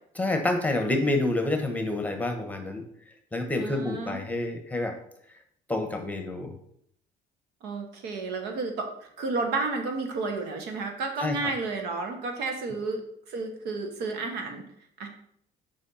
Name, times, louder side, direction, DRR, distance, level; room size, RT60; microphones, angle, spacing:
voice 1, 0.2-2.8 3.3-4.9 5.7-6.5 11.2-11.5, left 2 dB, 10° left, 5 dB, 1.1 m, -28 dB
voice 2, 3.6-4.2 7.6-14.6 15.0-15.1, right 3 dB, 85° right, 4 dB, 1.3 m, -32 dB
5.4 x 4.1 x 5.5 m, 0.68 s
cardioid pair, 110°, 17 cm